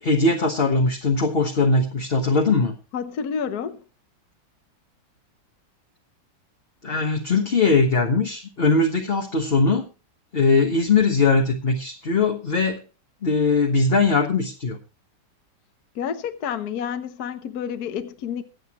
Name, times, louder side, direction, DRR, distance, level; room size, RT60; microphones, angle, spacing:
voice 1, 0.0-2.7 6.8-9.8 10.3-12.8 13.2-14.8, left 3 dB, 35° left, 1.2 m, -20 dB
voice 2, 2.9-3.8 15.9-18.4, left 7 dB, 60° left, 1.3 m, -29 dB
23.5 x 8.1 x 3.0 m
omnidirectional pair, 2.1 m